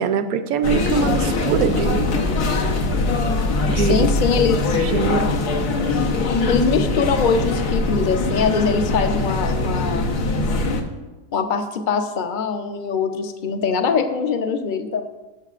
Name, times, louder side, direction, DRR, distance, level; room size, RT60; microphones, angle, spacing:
voice 1, 0.0-2.1 3.6-4.4 4.7-5.3 10.4-10.5, right 7 dB, 70° right, 10 dB, 1.1 m, -23 dB
sound 1, 0.6-10.8, left 2 dB, 80° left, 1.6 m, -22 dB
voice 2, 3.8-4.8 6.5-10.1 11.3-15.1, left 5 dB, 50° left, 6 dB, 0.6 m, -22 dB
19.0 x 6.4 x 2.5 m, 1.2 s
omnidirectional pair, 1.7 m